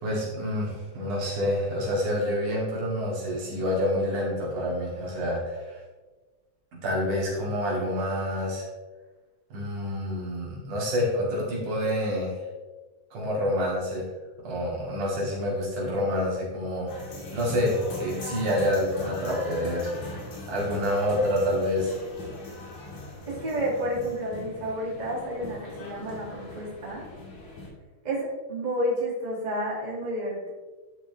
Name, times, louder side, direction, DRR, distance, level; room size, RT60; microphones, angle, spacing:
voice 1, 0.0-5.8 6.8-8.7 9.5-12.4 13.1-14.1 14.4-20.0 20.5-22.0, left 1 dB, 75° right, -4 dB, 3.8 m, -28 dB
sound 1, 16.9-27.7, left 2 dB, 65° left, 3.5 m, -40 dB
voice 2, 23.3-27.1 28.0-30.5, equal, 15° right, -5 dB, 1.9 m, -30 dB
10.5 x 5.8 x 3.3 m, 1.3 s
omnidirectional pair, 3.6 m